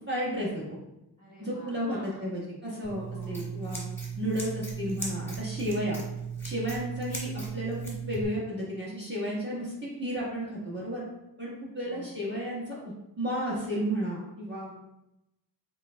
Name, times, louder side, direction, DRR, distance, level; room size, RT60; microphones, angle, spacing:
voice 1, 0.1-0.8 1.4-3.8 4.2-6.0 6.4-9.7 10.0-11.0 11.4-12.8 13.2-14.8, equal, 25° right, -6 dB, 1.3 m, -32 dB
voice 2, 1.2-2.4 3.1-3.7 11.9-12.2, equal, 45° right, -9 dB, 1.2 m, -49 dB
Scissors, 2.8-8.2, right 5 dB, 5° left, 1.2 m, -36 dB
5.0 x 3.4 x 2.2 m, 0.90 s
wide cardioid pair, 55°, 44 cm